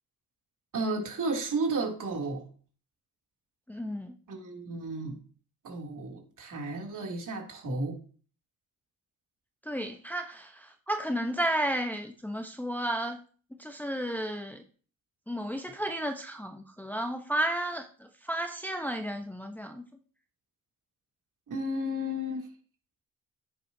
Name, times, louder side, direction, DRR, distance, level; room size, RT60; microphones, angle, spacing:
voice 1, 0.7-2.5 4.3-5.2 5.6-8.0 21.5-22.4, right 2 dB, 55° right, 1 dB, 2.8 m, -33 dB
voice 2, 3.7-4.1 9.6-13.2 13.6-14.6 15.3-19.8, right 1 dB, 5° left, 5 dB, 0.8 m, -33 dB
9.9 x 8.7 x 2.7 m, 0.42 s
cardioid pair, 85°, 38 cm